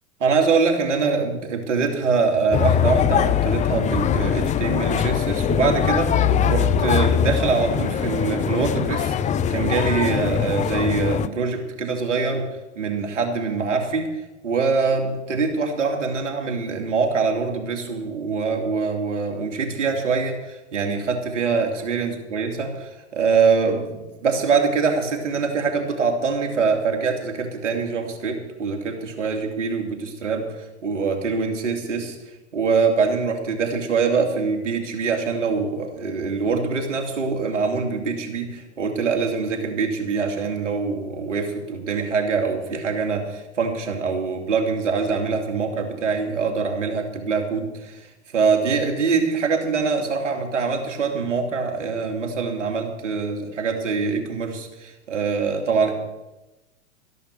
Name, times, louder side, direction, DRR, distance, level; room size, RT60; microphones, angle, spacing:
voice 1, 0.2-12.5 12.8-14.1 14.4-32.2 32.5-48.1 48.3-55.9, right 5 dB, 80° right, 3 dB, 2.9 m, -24 dB
sound 1, 2.5-11.3, left 8 dB, 20° left, 0.6 m, -22 dB
13.5 x 11.0 x 6.7 m, 1.0 s
hypercardioid pair, 100°, 36 cm